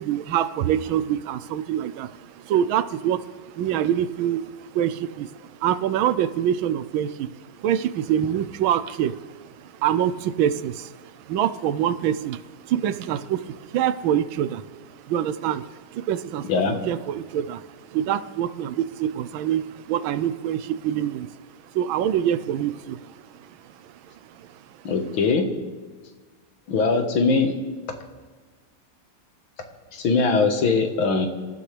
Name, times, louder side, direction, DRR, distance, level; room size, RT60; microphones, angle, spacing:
voice 1, 0.0-16.5 16.9-21.4 21.7-24.8, right 10 dB, 80° right, 14 dB, 1.5 m, -26 dB
voice 2, 24.8-25.5 26.7-27.6 29.9-31.3, left 4 dB, 90° left, 5 dB, 2.2 m, -21 dB
26.5 x 14.0 x 3.4 m, 1.4 s
omnidirectional pair, 2.2 m